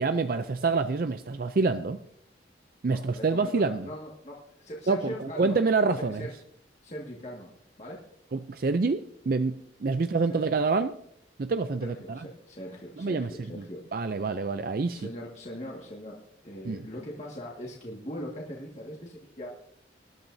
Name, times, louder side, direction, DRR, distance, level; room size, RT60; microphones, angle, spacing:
voice 1, 0.0-2.0 2.8-3.9 4.9-6.2 8.3-10.9 11.4-12.2 13.0-13.3 13.6-13.7 13.9-15.1 16.7-16.8, right 4 dB, 50° right, 10 dB, 0.4 m, -27 dB
voice 2, 2.9-5.6 6.1-6.3 6.8-7.5 7.8-8.0 10.3-10.6 11.8-13.8 14.9-16.2 16.4-19.5, equal, 40° left, -3 dB, 1.9 m, -40 dB
20.0 x 12.0 x 2.7 m, 0.69 s
head